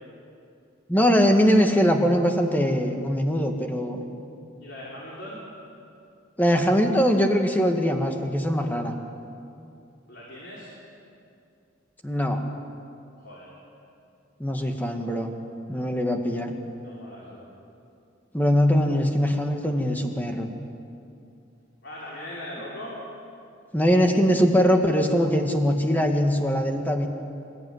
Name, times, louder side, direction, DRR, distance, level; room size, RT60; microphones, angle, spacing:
voice 1, 0.9-4.0 6.4-8.9 12.0-12.4 14.4-15.3 15.7-16.5 18.3-20.5 23.7-27.1, equal, 10° left, 3 dB, 1.8 m, -22 dB
voice 2, 4.6-5.4 10.1-10.7 13.2-13.5 16.8-17.5 21.8-23.0, left 1 dB, 65° left, -6 dB, 4.8 m, -39 dB
26.5 x 14.5 x 9.5 m, 2.6 s
head